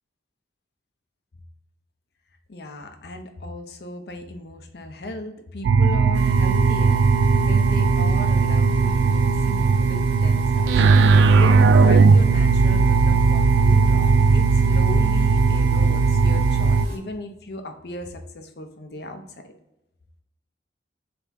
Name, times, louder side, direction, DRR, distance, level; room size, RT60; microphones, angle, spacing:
voice 1, 2.5-10.7 11.3-19.5, left 1 dB, 60° left, 5 dB, 0.7 m, -36 dB
sound 1, 5.6-16.9, right 4 dB, 90° right, 0.3 m, -17 dB
sound 2, 6.1-17.0, left 1 dB, 60° right, 0.7 m, -35 dB
3.5 x 3.4 x 4.1 m, 0.87 s
head